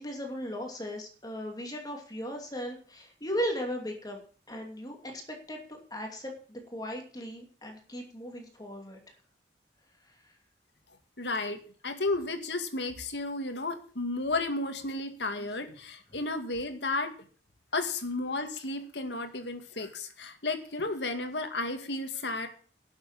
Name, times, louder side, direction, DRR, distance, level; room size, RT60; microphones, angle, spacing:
voice 1, 0.0-4.2 4.5-9.0, equal, 25° left, 2 dB, 2.6 m, -37 dB
voice 2, 11.2-17.1 17.7-22.5, left 2 dB, 80° left, 6 dB, 2.1 m, -33 dB
12.0 x 7.3 x 8.8 m, 0.43 s
head